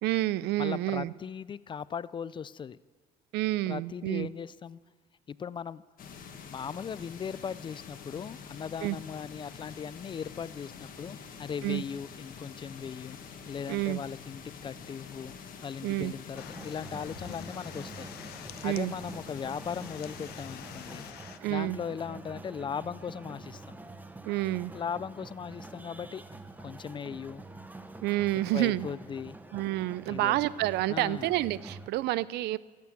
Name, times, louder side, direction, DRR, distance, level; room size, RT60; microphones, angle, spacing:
voice 1, 0.0-1.1 3.3-4.3 8.8-9.0 11.6-11.8 13.7-14.0 15.8-16.1 18.6-18.9 21.4-21.8 24.3-24.7 28.0-28.9 29.5-32.6, right 16 dB, 80° right, 20 dB, 0.4 m, -29 dB
voice 2, 0.6-2.8 3.7-4.8 5.3-5.8 6.5-13.2 13.5-15.3 15.6-18.1 18.6-21.1 21.5-23.8 24.7-26.2 26.6-27.4 28.5-29.4 30.1-30.4 30.9-31.3, left 7 dB, 30° left, 19 dB, 0.3 m, -38 dB
sound 1, 6.0-21.1, left 6 dB, 55° left, 1.8 m, -47 dB
sound 2, 16.3-31.9, right 2 dB, 10° right, 0.8 m, -46 dB
sound 3, 16.4-21.4, left 12 dB, 75° left, 0.7 m, -48 dB
14.5 x 8.3 x 8.7 m, 1.4 s
cardioid pair, 110°, 17 cm